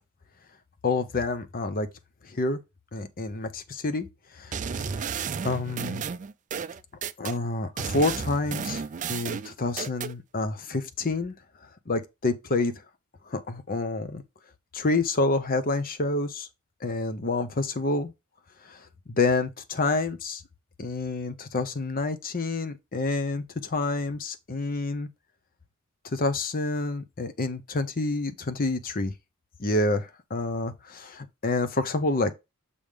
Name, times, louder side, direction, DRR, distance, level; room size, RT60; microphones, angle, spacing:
voice 1, 0.8-1.9 2.3-2.6 2.9-4.1 4.3-5.2 5.4-6.0 7.2-8.8 9.1-11.3 11.9-12.7 13.3-14.2 14.7-16.5 16.8-18.1 18.7-20.4 20.8-25.1 26.1-29.1 29.6-32.3, left 3 dB, 40° left, 0.8 m, -28 dB
sound 1, 4.5-7.4 7.8-10.1, right 6 dB, 35° right, 0.4 m, -32 dB
6.9 x 3.6 x 5.0 m
head